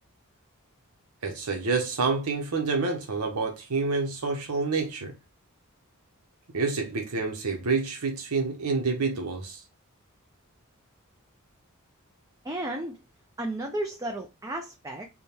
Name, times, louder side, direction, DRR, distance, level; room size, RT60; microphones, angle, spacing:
voice 1, 1.2-5.1 6.5-9.6, right 4 dB, 85° right, 0.8 m, -28 dB
voice 2, 12.4-13.0 13.4-15.1, right 1 dB, 15° right, 0.4 m, -33 dB
3.5 x 2.2 x 4.2 m
head